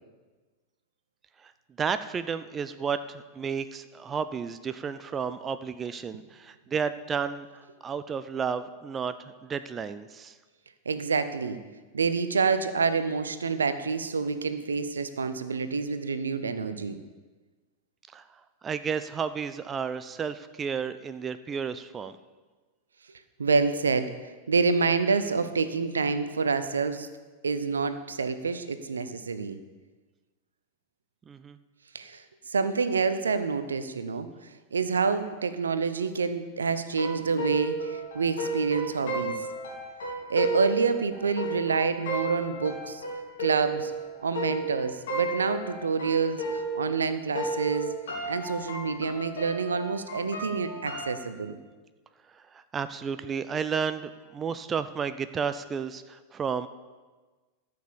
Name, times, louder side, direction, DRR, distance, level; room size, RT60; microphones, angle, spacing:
voice 1, 1.8-10.4 18.1-22.2 31.3-31.6 52.3-56.7, right 6 dB, 20° right, 12 dB, 0.5 m, -32 dB
voice 2, 10.9-11.6 11.9-17.0 23.4-27.1 27.4-29.6 31.9-34.3 34.7-39.4 40.3-43.0 43.4-43.9 44.2-47.9 48.3-51.6, right 5 dB, 70° right, 11 dB, 0.7 m, -27 dB
sound 1, 36.9-47.1 47.3-51.2, right 2 dB, 60° left, 3.6 m, -34 dB
13.5 x 6.7 x 7.1 m, 1.3 s
figure-of-eight pair, 90°, 0 cm